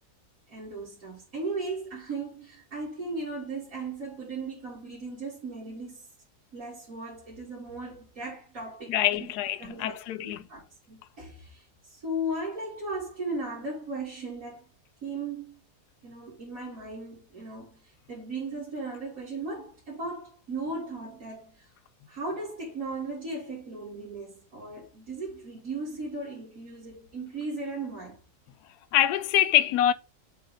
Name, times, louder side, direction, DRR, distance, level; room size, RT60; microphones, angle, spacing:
voice 1, 0.5-6.1 6.5-9.3 9.6-14.6 15.0-15.5 16.0-21.7 22.1-28.2, right 2 dB, 55° right, 2.9 m, -37 dB
voice 2, 8.9-10.4 28.9-29.9, left 12 dB, 80° left, 1.1 m, -24 dB
7.4 x 2.5 x 5.4 m
omnidirectional pair, 1.7 m